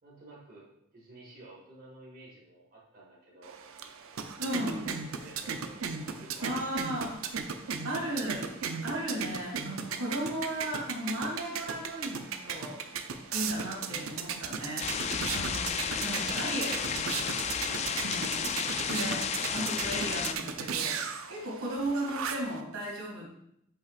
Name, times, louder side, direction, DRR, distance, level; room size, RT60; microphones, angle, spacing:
voice 1, 0.0-3.6 4.5-6.8 13.8-14.3 17.6-18.0, right 2 dB, 45° right, -5 dB, 1.6 m, -52 dB
sound 1, 3.4-22.6, right 6 dB, 70° right, 0.6 m, -37 dB
voice 2, 4.4-4.9 6.4-7.5 7.8-8.5 8.8-12.8 13.3-14.9 15.3-16.9 18.0-18.6 18.9-19.2 19.5-21.0 21.3-23.3, right 1 dB, 85° right, -3 dB, 2.2 m, -35 dB
sound 2, 14.8-20.3, left 7 dB, 30° left, 0.3 m, -32 dB
8.3 x 5.5 x 2.4 m, 0.76 s
head